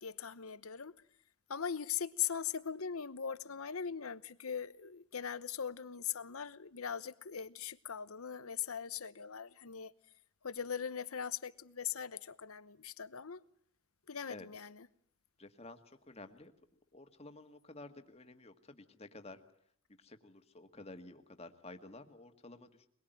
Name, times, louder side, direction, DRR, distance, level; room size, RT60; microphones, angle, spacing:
voice 1, 0.0-1.0 1.5-9.9 10.4-13.4 14.1-14.9, left 8 dB, 90° left, 1.0 m, -40 dB
voice 2, 15.4-16.5 16.9-19.4 20.0-22.9, left 2 dB, 30° left, 1.9 m, -52 dB
23.0 x 22.0 x 9.2 m
head